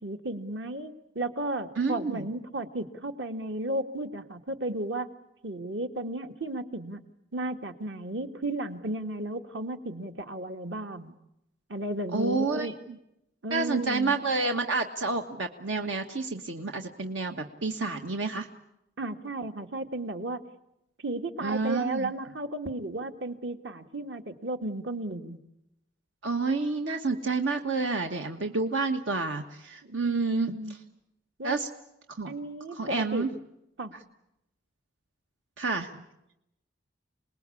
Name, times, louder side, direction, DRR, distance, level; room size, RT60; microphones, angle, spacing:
voice 1, 0.0-5.1 5.4-7.0 7.3-11.1 11.7-12.7 13.4-14.2 19.0-20.4 21.0-25.4 29.8-30.7 31.4-31.5 32.3-33.3 33.8-33.9, right 2 dB, 65° right, 7 dB, 1.8 m, -34 dB
voice 2, 1.8-2.3 12.1-13.0 13.5-18.5 21.4-22.1 26.2-30.8 31.4-31.7 32.1-32.3 32.7-33.3 35.6-36.0, right 3 dB, 80° right, 4 dB, 1.4 m, -29 dB
28.0 x 20.0 x 8.5 m, 0.85 s
head